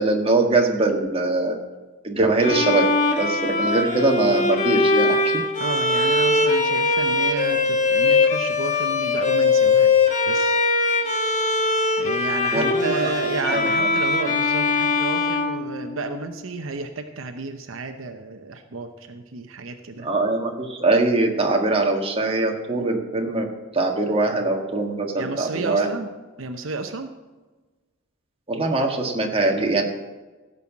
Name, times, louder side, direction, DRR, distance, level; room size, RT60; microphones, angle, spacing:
voice 1, 0.0-1.5 2.0-2.9 3.2-5.4 12.5-13.1 13.5-13.9 20.0-23.5 23.7-25.9 28.5-29.8, right 2 dB, 30° right, 2 dB, 1.5 m, -22 dB
Bowed string instrument, 2.4-16.3, left 3 dB, 40° left, 1.4 m, -21 dB
voice 2, 5.6-9.9 10.3-10.6 12.0-20.1 25.2-26.1 26.4-27.1, right 3 dB, 75° right, 7 dB, 0.8 m, -31 dB
16.5 x 5.6 x 7.3 m, 1.2 s
head